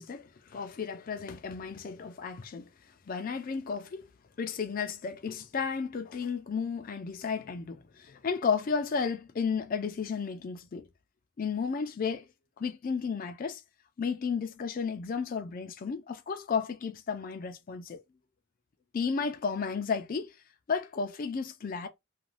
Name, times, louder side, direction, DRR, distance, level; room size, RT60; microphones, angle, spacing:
voice 1, 0.0-2.7 3.1-4.0 4.4-10.9 11.4-12.3 12.6-13.6 14.0-18.0 18.9-20.4 20.7-21.9, left 5 dB, 40° left, 0.4 m, -33 dB
2.5 x 2.2 x 3.1 m
head